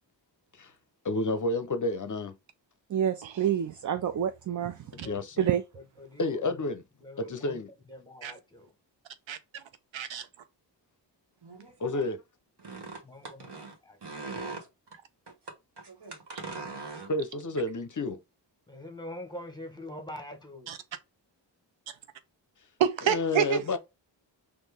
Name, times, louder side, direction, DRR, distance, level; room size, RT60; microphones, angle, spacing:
voice 1, 1.0-2.3 4.9-5.4 6.2-6.8 7.2-7.7 11.8-12.2 17.1-18.2 23.0-23.8, left 2 dB, 45° left, 0.6 m, -30 dB
voice 2, 2.9-5.1 5.4-5.6, right 9 dB, 45° right, 0.5 m, -28 dB
voice 3, 6.0-6.6 7.0-7.6 7.9-8.7 13.0-13.4 13.8-14.0 18.7-20.7, left 1 dB, 10° left, 1.1 m, -44 dB
voice 4, 9.3-9.6 9.9-10.3 20.7-20.8 22.8-23.6, right 8 dB, 90° right, 0.7 m, -28 dB
voice 5, 11.4-12.0 12.6-14.7 15.3-15.4 15.8-17.1, right 3 dB, 60° right, 1.7 m, -41 dB
4.3 x 2.6 x 3.4 m
wide cardioid pair, 80°, 45 cm